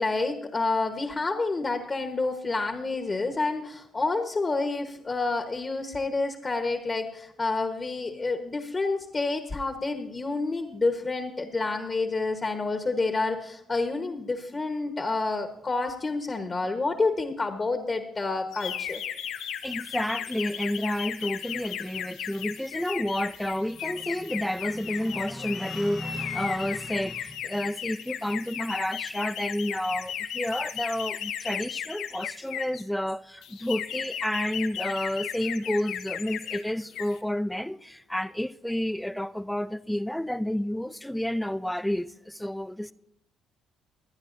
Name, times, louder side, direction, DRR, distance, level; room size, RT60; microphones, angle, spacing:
voice 1, 0.0-19.0, left 3 dB, 30° left, 1.1 m, -29 dB
sound 1, 18.5-32.8 33.4-36.6 36.9-37.2, left 9 dB, 75° left, 0.7 m, -35 dB
voice 2, 19.6-42.9, left 1 dB, 5° left, 0.5 m, -30 dB
22.5 x 9.6 x 2.6 m
hypercardioid pair, 55°, 0 cm